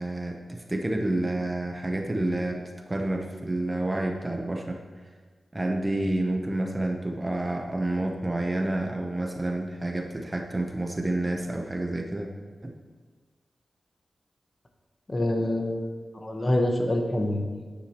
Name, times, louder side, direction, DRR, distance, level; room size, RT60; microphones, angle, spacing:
voice 1, 0.0-4.8 5.5-12.3 12.6-12.7, right 1 dB, 20° right, 2 dB, 0.8 m, -29 dB
voice 2, 15.1-15.9 16.1-17.6, left 1 dB, 30° left, 2 dB, 1.1 m, -26 dB
9.8 x 9.7 x 3.0 m, 1.5 s
wide cardioid pair, 105°, 0 cm